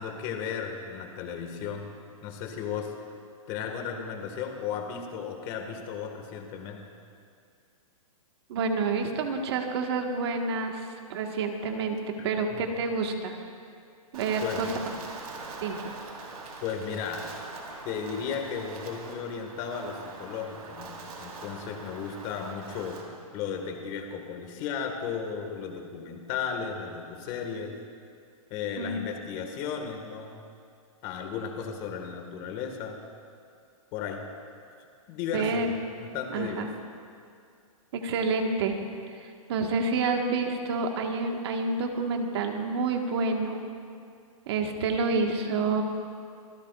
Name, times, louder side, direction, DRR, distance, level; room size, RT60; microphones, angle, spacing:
voice 1, 0.0-1.8 2.2-3.1 3.5-6.8 12.2-12.7 14.4-14.7 16.6-17.3 17.8-20.9 21.2-23.0 23.3-27.7 28.5-30.4 31.0-33.0 33.9-34.2 35.1-35.6 35.9-36.7, left 7 dB, 30° left, 4 dB, 1.7 m, -35 dB
voice 2, 8.5-12.0 12.2-13.3 14.1-14.7 15.6-15.9 28.8-29.0 35.3-35.7 36.3-36.7 37.9-38.8 39.2-43.6 44.5-45.8, right 4 dB, 45° right, 3 dB, 1.5 m, -28 dB
Wind, 14.1-23.0, right 3 dB, 85° right, 3.8 m, -42 dB
26.5 x 16.5 x 2.4 m, 2.3 s
hypercardioid pair, 160°, 19 cm